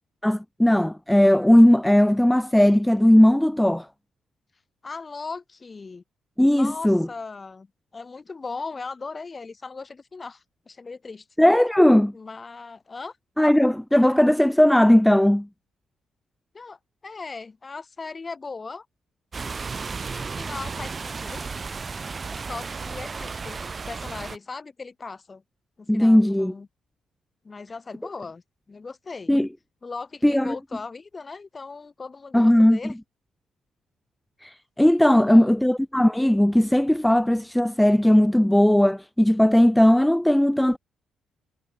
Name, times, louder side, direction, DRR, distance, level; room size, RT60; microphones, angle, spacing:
voice 1, 0.2-3.9 6.4-7.1 11.4-12.1 13.4-15.5 25.9-26.5 29.3-29.5 30.2-30.5 32.3-32.9 34.4-40.8, left 1 dB, 5° left, 1.0 m, -18 dB
voice 2, 4.8-6.0 6.5-7.7 7.9-11.2 12.1-13.2 16.5-18.9 20.0-21.4 22.4-25.4 25.8-26.7 27.4-29.4 29.8-32.9 35.1-35.5, left 4 dB, 30° left, 3.8 m, -38 dB
sound 1, 19.3-24.4, right 4 dB, 35° right, 4.7 m, -34 dB
cardioid pair, 90°, 0 cm